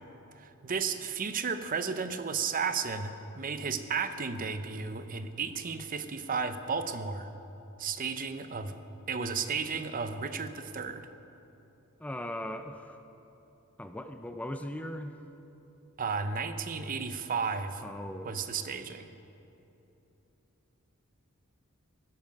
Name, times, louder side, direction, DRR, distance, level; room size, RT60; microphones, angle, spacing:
voice 1, 0.4-7.3 7.8-8.8 9.1-11.1 16.0-17.8 18.2-19.1, right 5 dB, 40° right, 10 dB, 0.7 m, -33 dB
voice 2, 12.0-13.0 13.8-15.1 17.8-18.4, left 1 dB, 5° left, 7 dB, 0.4 m, -39 dB
17.5 x 12.5 x 5.3 m, 3.0 s
head